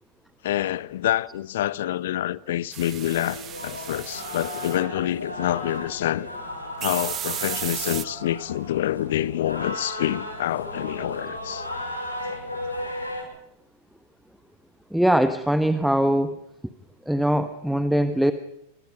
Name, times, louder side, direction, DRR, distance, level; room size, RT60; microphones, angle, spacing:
voice 1, 0.4-6.3 6.8-11.7, left 13 dB, 55° left, 0.8 m, -27 dB
sound 1, 2.7-4.8 6.8-8.0, right 11 dB, 30° right, 1.2 m, -34 dB
sound 2, 2.9-13.2, left 1 dB, 80° left, 7.5 m, -35 dB
voice 2, 14.9-16.4 17.1-18.3, equal, ahead, 1.2 m, -21 dB
27.5 x 25.0 x 5.3 m
figure-of-eight pair, 90°, 0 cm